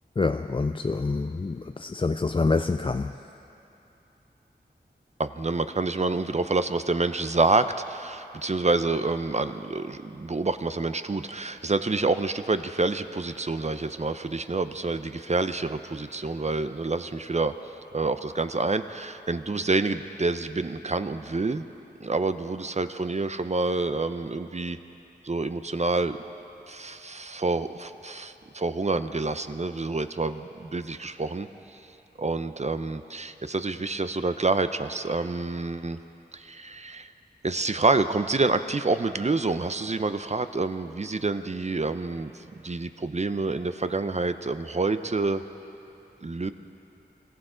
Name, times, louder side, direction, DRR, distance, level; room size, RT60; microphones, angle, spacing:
voice 1, 0.2-3.2, left 3 dB, 30° left, 8 dB, 0.4 m, -26 dB
voice 2, 5.2-17.5 17.9-21.6 22.0-24.8 25.2-26.2 26.7-31.8 32.2-36.0 36.3-37.1 37.4-45.4 46.2-46.5, right 3 dB, 40° right, 10 dB, 0.6 m, -27 dB
26.0 x 14.5 x 3.8 m, 2.8 s
wide cardioid pair, 55°, 18 cm